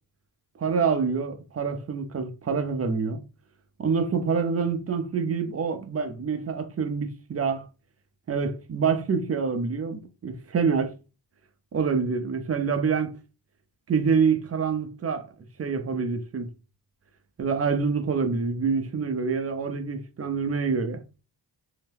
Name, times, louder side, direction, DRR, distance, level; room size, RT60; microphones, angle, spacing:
voice 1, 0.6-3.2 3.8-7.6 8.3-10.9 11.7-13.2 13.9-15.3 15.6-16.5 17.4-21.0, right 5 dB, 30° right, 0.6 m, -26 dB
2.8 x 2.1 x 3.4 m
cardioid pair, 65°, 46 cm